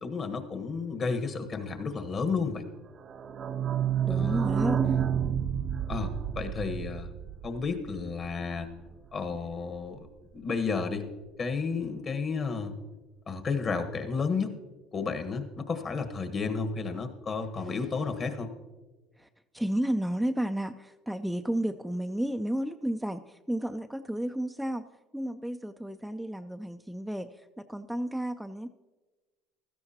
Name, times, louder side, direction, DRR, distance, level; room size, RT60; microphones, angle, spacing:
voice 1, 0.0-2.7 4.1-4.5 5.9-7.1 7.4-8.7 9.1-10.1 10.3-11.1 11.4-12.7 13.3-14.5 14.9-18.5, left 4 dB, 40° left, 7 dB, 1.4 m, -32 dB
sound 1, 3.0-8.5 8.9-9.0 9.1-9.2 9.5-9.6, right 8 dB, 45° right, 0.6 m, -30 dB
voice 2, 4.1-5.0 19.2-19.3 19.5-24.9 25.1-28.7, right 1 dB, ahead, 7 dB, 0.4 m, -32 dB
15.5 x 13.0 x 2.9 m, 1.2 s
hypercardioid pair, 75°, 0 cm